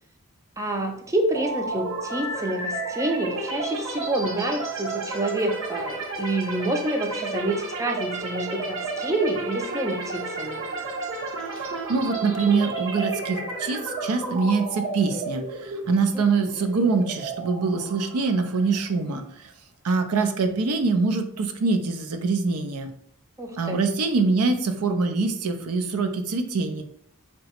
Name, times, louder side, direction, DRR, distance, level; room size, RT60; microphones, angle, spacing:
voice 1, 0.6-10.6 16.1-16.2 23.4-23.8, right 1 dB, 15° right, 2 dB, 0.4 m, -28 dB
sound 1, 1.3-19.1, right 3 dB, 60° right, 0.9 m, -32 dB
voice 2, 11.6-19.5 19.8-22.9 23.6-26.8, right 4 dB, 75° right, 7 dB, 0.5 m, -24 dB
3.8 x 2.2 x 4.3 m, 0.64 s
head